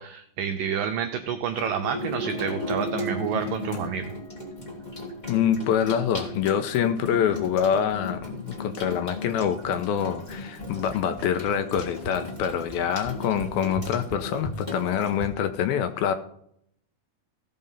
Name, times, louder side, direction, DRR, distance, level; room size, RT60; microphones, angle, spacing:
voice 1, 0.0-4.1, right 8 dB, 90° right, 6 dB, 1.9 m, -29 dB
Water tap faucet / Sink (filling or washing), 1.5-15.3, left 1 dB, 20° left, 1.1 m, -35 dB
Wind instrument woodwind instrument, 2.2-7.8, left 6 dB, 65° left, 4.7 m, -51 dB
voice 2, 5.3-16.1, left 8 dB, 80° left, 9 dB, 2.3 m, -25 dB
16.0 x 5.4 x 5.6 m, 0.68 s
omnidirectional pair, 4.7 m